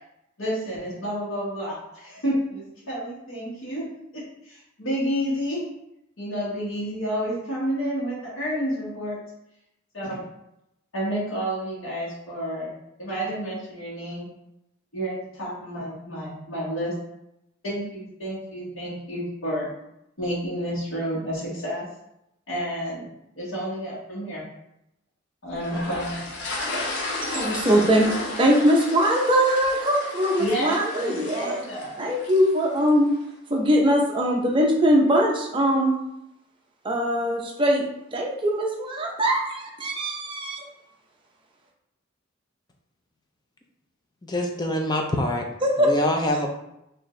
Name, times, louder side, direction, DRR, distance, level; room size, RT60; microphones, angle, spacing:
voice 1, 0.4-3.8 4.1-5.6 6.2-9.2 9.9-10.2 10.9-12.7 13.0-14.3 14.9-16.9 17.6-19.7 20.2-21.8 22.5-23.1 23.4-24.4 25.4-26.1 30.4-31.9, equal, 80° left, -8 dB, 1.3 m, -30 dB
sound 1, 25.6-32.9, left 2 dB, 55° left, 0.8 m, -33 dB
voice 2, 27.2-31.6 32.0-33.1 33.5-35.9 36.8-37.8 38.1-40.6 45.6-45.9, equal, 25° right, 0 dB, 0.6 m, -21 dB
voice 3, 44.2-45.5 45.8-46.5, left 1 dB, 20° left, 2 dB, 0.5 m, -25 dB
4.4 x 2.6 x 3.1 m, 0.84 s
head